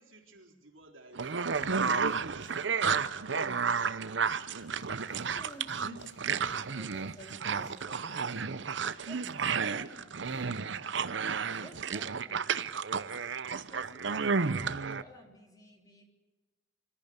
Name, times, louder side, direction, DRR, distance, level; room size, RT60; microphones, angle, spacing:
voice 1, 0.0-2.3 2.9-4.2, right 2 dB, 85° right, 1 dB, 3.9 m, -56 dB
sound 1, 1.1-15.0, right 5 dB, 65° right, 0.8 m, -32 dB
sound 2, 1.2-2.7 4.3-7.9 10.2-10.6 11.9-12.0, left 2 dB, 65° left, 3.0 m, -60 dB
voice 2, 5.0-8.5 9.1-10.1 11.6-12.6 13.7-14.6 14.9-16.0, left 1 dB, 20° left, 2 dB, 3.5 m, -53 dB
26.0 x 14.5 x 8.1 m, 1.2 s
head